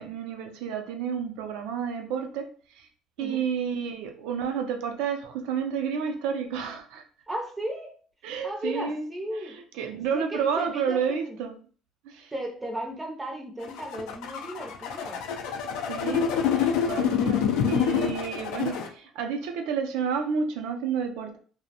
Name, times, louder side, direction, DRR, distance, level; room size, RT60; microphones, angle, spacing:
voice 1, 0.0-2.5 2.7-2.9 3.2-7.0 8.2-9.0 9.3-11.5 12.0-12.3 15.9-21.4, right 6 dB, 85° right, 0.4 m, -30 dB
voice 2, 7.3-7.9 8.3-9.6 10.1-11.4 12.3-15.2, right 1 dB, 10° right, 0.5 m, -35 dB
sound 1, 13.6-18.9, left 8 dB, 75° left, 0.3 m, -27 dB
2.5 x 2.0 x 2.7 m
cardioid pair, 165°, 0 cm